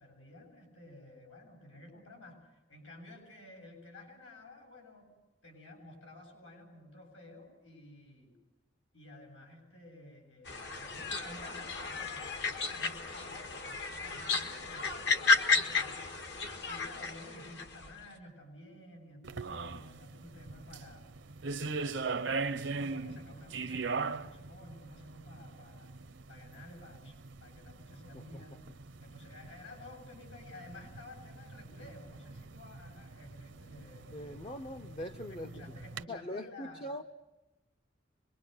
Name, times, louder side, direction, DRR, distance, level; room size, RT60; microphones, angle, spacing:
voice 1, 0.0-5.1 5.4-8.4 8.9-21.1 22.2-25.9 26.3-28.6 29.0-34.2 35.3-37.0, left 2 dB, 85° left, 1 dB, 7.8 m, -53 dB
sound 1, 10.5-17.9, left 4 dB, 65° left, 1.8 m, -33 dB
sound 2, 19.2-36.0, right 4 dB, 65° right, 0.8 m, -41 dB
voice 2, 34.1-35.6 36.1-37.0, left 1 dB, 30° left, 6 dB, 0.8 m, -42 dB
26.5 x 22.5 x 6.7 m, 1.0 s
head